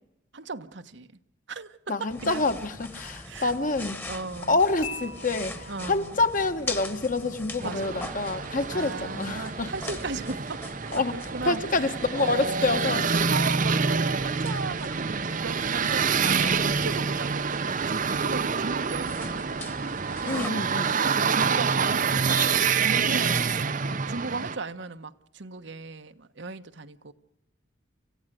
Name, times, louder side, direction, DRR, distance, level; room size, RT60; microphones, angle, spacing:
voice 1, 0.3-1.1 1.5-2.4 3.2-3.5 4.1-4.6 5.7-6.2 7.6-8.0 8.7-10.7 11.1-11.6 12.1-20.6 21.0-23.7 24.1-27.1, right 3 dB, 65° right, 1.1 m, -36 dB
voice 2, 1.9-4.0 4.5-9.7 10.9-11.1 11.4-13.0 20.2-21.0, left 3 dB, 45° left, 1.5 m, -27 dB
sound 1, 2.1-20.5, left 1 dB, 10° left, 1.4 m, -42 dB
Dishes pots and pans / Chink clink, 4.8-6.9, left 4 dB, 60° left, 4.3 m, -42 dB
sound 2, 7.6-24.6, right 5 dB, 45° right, 0.7 m, -27 dB
29.0 x 15.5 x 7.8 m
head